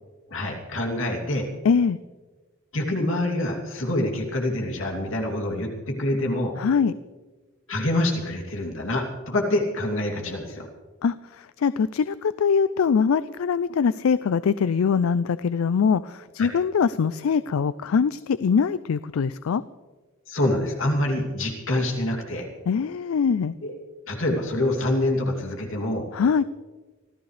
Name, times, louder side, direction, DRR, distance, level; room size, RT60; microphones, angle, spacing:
voice 1, 0.3-1.5 2.7-6.5 7.7-10.7 16.4-16.5 20.3-22.5 23.6-23.7 24.1-26.0, left 1 dB, 70° left, 1 dB, 2.8 m, -26 dB
voice 2, 1.6-2.0 6.6-6.9 11.0-11.1 11.6-19.6 22.7-23.5 26.1-26.4, left 6 dB, 85° left, 16 dB, 0.4 m, -22 dB
25.0 x 15.0 x 3.3 m, 1.3 s
head